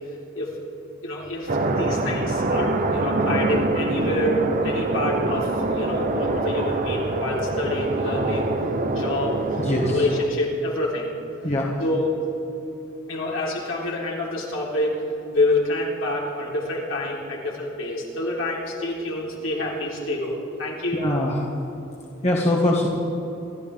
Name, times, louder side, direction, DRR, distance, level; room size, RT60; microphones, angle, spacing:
voice 1, 1.0-8.5 8.9-11.1 11.8-12.2 13.1-21.0, left 1 dB, 75° left, -4 dB, 3.8 m, -27 dB
sound 1, 1.5-10.3, right 2 dB, 40° right, 1.0 m, -25 dB
voice 2, 9.6-10.0 11.4-11.7 20.9-21.5 22.2-22.9, left 1 dB, 35° left, -3 dB, 1.8 m, -22 dB
28.0 x 12.5 x 3.6 m, 2.7 s
head